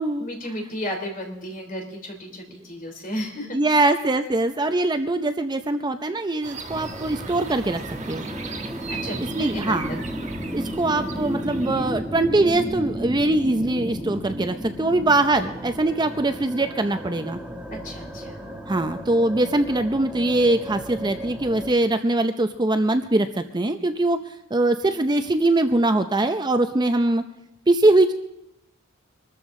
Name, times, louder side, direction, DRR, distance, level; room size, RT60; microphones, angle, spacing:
voice 1, 0.2-3.6 8.9-10.0 17.8-18.4, left 1 dB, 45° left, 3 dB, 3.3 m, -33 dB
voice 2, 3.5-7.8 8.1-8.2 9.3-10.0 10.5-17.4 18.7-24.2 24.5-27.2 27.7-28.1, right 2 dB, 20° right, 8 dB, 0.6 m, -22 dB
sound 1, 6.4-11.9, right 4 dB, 35° right, 1.4 m, -38 dB
sound 2, 6.7-21.7, equal, 5° right, 1.4 m, -33 dB
24.0 x 13.5 x 3.7 m, 0.84 s
head